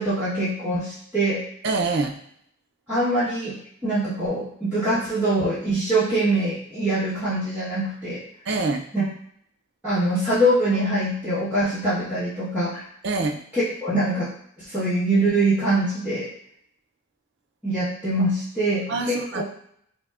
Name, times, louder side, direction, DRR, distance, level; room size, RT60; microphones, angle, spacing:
voice 1, 0.0-1.4 2.9-3.6 3.8-8.2 8.9-9.1 9.8-12.8 13.5-14.3 14.7-16.3 17.6-19.4, right 1 dB, 10° right, -14 dB, 1.0 m, -23 dB
voice 2, 1.6-2.1 8.5-8.8 13.0-13.4 18.9-19.4, right 3 dB, 50° right, 3 dB, 0.4 m, -25 dB
5.8 x 2.1 x 2.4 m, 0.69 s
head